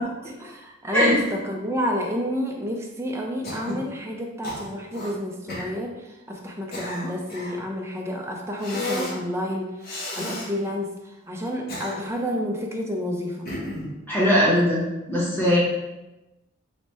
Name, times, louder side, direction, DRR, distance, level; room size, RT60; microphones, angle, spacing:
voice 1, 0.0-9.9 10.2-13.5, equal, 15° right, 0 dB, 0.4 m, -30 dB
Cough, 3.4-3.9 4.4-5.1 5.5-5.7 6.4-7.6 8.6-9.2 9.8-10.5 11.4-12.3 13.5-13.9, left 1 dB, 45° left, 0.8 m, -32 dB
voice 2, 14.1-14.8 15.1-15.6, equal, 10° left, -7 dB, 0.9 m, -19 dB
3.3 x 2.1 x 4.2 m, 1.0 s
head